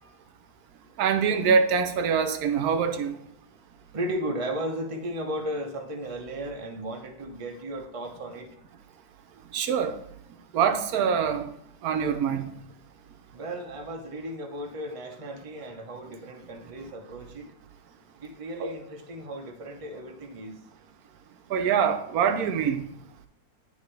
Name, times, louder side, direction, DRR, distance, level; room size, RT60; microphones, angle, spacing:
voice 1, 1.0-3.1 9.5-9.9 10.5-11.4 11.8-12.5 18.6-18.7 21.5-22.8, right 6 dB, 75° right, 8 dB, 1.1 m, -24 dB
voice 2, 3.9-8.5 13.3-17.4 18.2-20.5, right 1 dB, 30° right, 3 dB, 0.7 m, -35 dB
10.0 x 3.5 x 3.3 m, 0.72 s
omnidirectional pair, 1.7 m